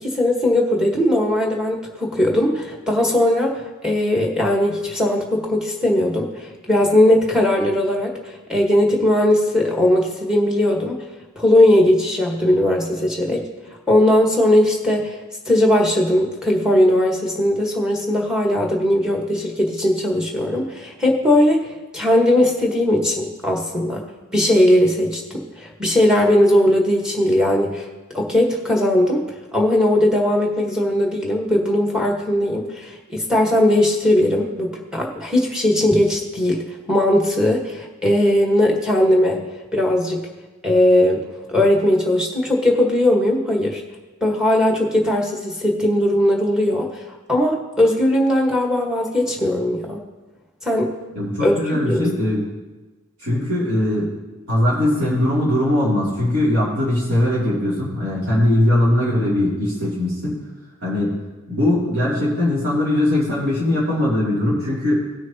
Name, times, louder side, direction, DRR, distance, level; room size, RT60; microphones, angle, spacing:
voice 1, 0.0-11.0 11.4-13.4 13.9-15.2 15.5-24.0 24.3-27.8 28.1-29.2 29.5-39.4 39.7-40.3 40.6-41.2 41.5-43.8 44.2-46.9 47.3-50.0 50.6-50.9 51.4-52.1, left 1 dB, 5° right, 0 dB, 1.3 m, -18 dB
voice 2, 51.1-52.4 53.2-54.1 54.5-60.4 60.8-61.1 61.5-65.1, left 1 dB, 60° right, -8 dB, 2.8 m, -20 dB
18.0 x 6.3 x 2.9 m, 1.2 s
head